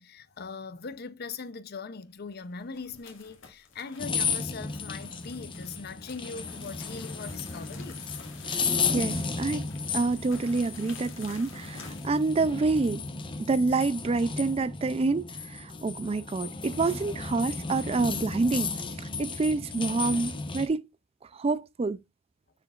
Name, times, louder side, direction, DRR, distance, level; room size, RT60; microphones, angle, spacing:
voice 1, 0.0-8.1, left 5 dB, 50° left, 0.6 m, -40 dB
sound 1, 2.2-13.9, left 6 dB, 70° left, 1.9 m, -51 dB
sound 2, 4.0-20.7, left 4 dB, 25° left, 0.9 m, -34 dB
voice 2, 8.5-9.7 9.9-13.0 13.4-18.7 19.0-20.9 21.3-22.0, right 3 dB, 30° right, 0.4 m, -28 dB
7.0 x 6.8 x 2.4 m
head